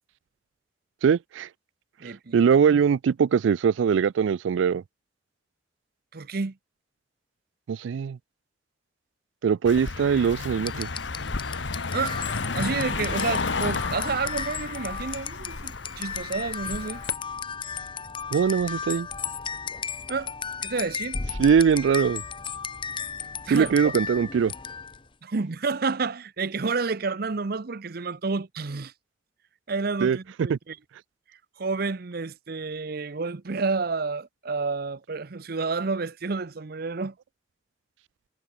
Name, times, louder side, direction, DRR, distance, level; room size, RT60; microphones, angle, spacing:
voice 1, 1.0-1.5 2.3-4.8 7.7-8.2 9.4-10.9 18.3-19.1 21.4-22.2 23.5-24.5 30.0-30.2 30.5-30.6, right 7 dB, 85° right, 0.3 m, -21 dB
voice 2, 2.0-2.8 6.1-6.6 11.9-12.2 12.5-17.0 20.1-20.3 20.6-21.2 23.5-23.9 25.2-28.9 29.7-30.8 31.6-37.1, right 4 dB, 55° right, 0.7 m, -30 dB
Car passing by, 9.7-17.1, left 4 dB, 75° left, 1.2 m, -32 dB
sound 1, 10.6-25.1, left 6 dB, 25° left, 0.9 m, -35 dB
head